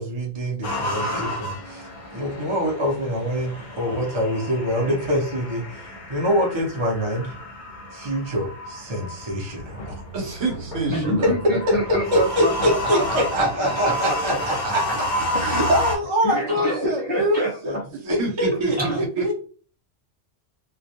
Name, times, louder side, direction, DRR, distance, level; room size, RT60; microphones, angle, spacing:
voice 1, 0.0-7.3 7.9-10.0 12.1-14.8 15.3-17.0 17.6-17.8 18.0-19.3, equal, 35° right, -2 dB, 0.5 m, -25 dB
sound 1, 0.6-16.0, equal, 50° left, 0.7 m, -31 dB
voice 2, 10.1-11.3 12.4-13.9 14.6-14.7 17.2-17.4 18.2-18.7 19.2-19.3, right 2 dB, 75° right, 1 dB, 1.1 m, -27 dB
voice 3, 10.9-14.4 14.9-15.6 16.2-17.8 18.5-19.0, equal, 10° right, -5 dB, 0.9 m, -27 dB
2.2 x 2.2 x 2.7 m, 0.40 s
omnidirectional pair, 1.2 m